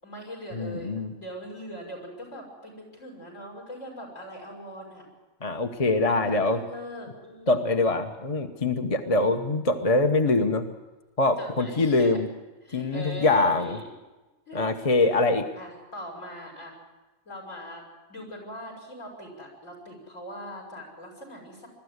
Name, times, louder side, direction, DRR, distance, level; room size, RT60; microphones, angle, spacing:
voice 1, 0.0-5.0 6.1-7.6 9.0-9.5 11.4-12.2 12.6-13.9 14.5-14.9 15.6-16.8 17.3-17.8 18.1-21.7, equal, 65° left, -1 dB, 6.5 m, -41 dB
voice 2, 0.5-1.1 5.4-6.6 7.5-10.7 11.2-12.3 12.7-13.8 14.5-15.5, left 2 dB, 30° left, 6 dB, 1.0 m, -23 dB
22.0 x 13.5 x 9.6 m, 1.2 s
omnidirectional pair, 1.4 m